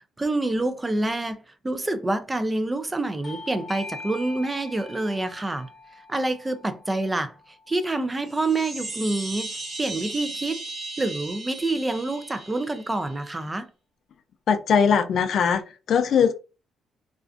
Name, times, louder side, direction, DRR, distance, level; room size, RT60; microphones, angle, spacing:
voice 1, 0.2-5.7 6.1-7.3 7.7-9.5 9.8-10.6 11.0-13.7, right 2 dB, 20° right, 0.4 m, -27 dB
Bell / Doorbell, 3.2-8.4, left 3 dB, 45° left, 0.8 m, -43 dB
sound 1, 8.2-13.3, right 2 dB, 50° right, 0.8 m, -37 dB
voice 2, 14.5-16.3, left 7 dB, 65° left, 0.3 m, -21 dB
2.4 x 2.3 x 2.4 m
cardioid pair, 90°, 0 cm